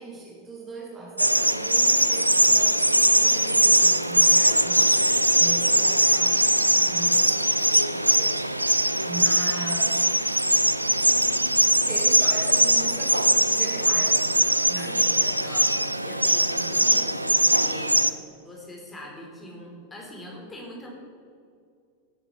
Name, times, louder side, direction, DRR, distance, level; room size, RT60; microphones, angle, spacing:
voice 1, 0.0-2.8 3.1-5.1 5.3-6.4 6.9-7.4 7.9-8.4 9.1-10.0 11.9-14.4 14.7-15.6, right 2 dB, 20° right, -2 dB, 2.0 m, -39 dB
sound 1, 1.2-18.1, right 1 dB, 85° right, 0.4 m, -21 dB
voice 2, 6.7-7.4 14.8-18.0 18.4-20.9, left 1 dB, 15° left, -1 dB, 3.5 m, -42 dB
16.0 x 9.1 x 4.7 m, 2.3 s
figure-of-eight pair, 90°, 0 cm